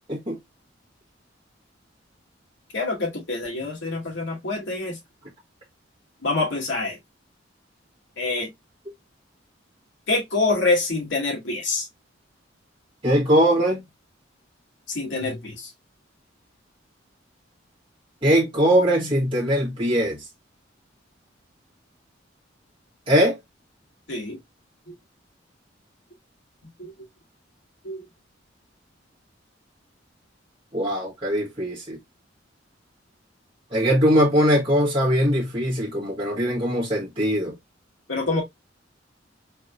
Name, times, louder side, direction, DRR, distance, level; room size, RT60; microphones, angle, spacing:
voice 1, 2.7-5.0 6.2-7.0 8.2-8.5 10.1-11.9 14.9-15.7 24.1-24.4 24.9-25.0 26.8-26.9 27.8-28.1 38.1-38.4, left 3 dB, 65° left, 2.6 m, -26 dB
voice 2, 13.0-13.8 18.2-20.2 23.1-23.4 30.7-32.0 33.7-37.5, equal, 30° right, 1.7 m, -21 dB
4.6 x 3.5 x 2.6 m
head